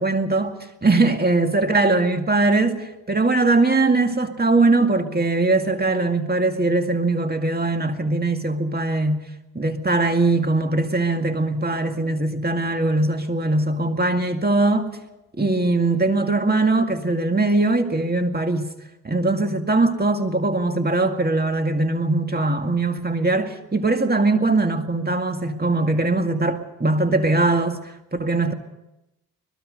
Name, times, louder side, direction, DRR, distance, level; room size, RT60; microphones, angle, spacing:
voice 1, 0.0-9.2 9.5-14.9 15.4-18.7 19.0-28.5, right 2 dB, 30° right, 2.1 m, -21 dB
23.5 x 21.0 x 5.4 m
cardioid pair, 65°, 34 cm